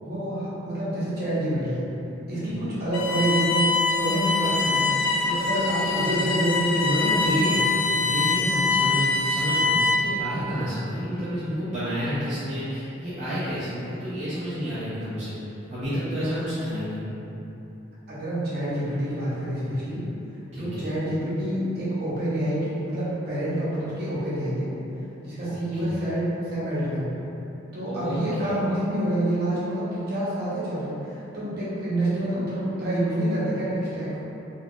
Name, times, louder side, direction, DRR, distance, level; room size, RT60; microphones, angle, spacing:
voice 1, 0.0-1.9 2.3-4.9 5.2-7.6 16.2-16.7 18.1-20.0 20.6-24.7 25.2-27.2 27.7-34.2, right 1 dB, 55° right, -10 dB, 0.9 m, -27 dB
Bowed string instrument, 2.9-10.2, left 3 dB, 90° left, 0.3 m, -24 dB
voice 2, 6.8-7.6 7.9-15.3 15.7-17.0 20.5-20.8 25.4-26.0 27.9-28.2 28.4-28.6, equal, 35° right, -13 dB, 0.5 m, -30 dB
2.3 x 2.3 x 3.4 m, 3.0 s
head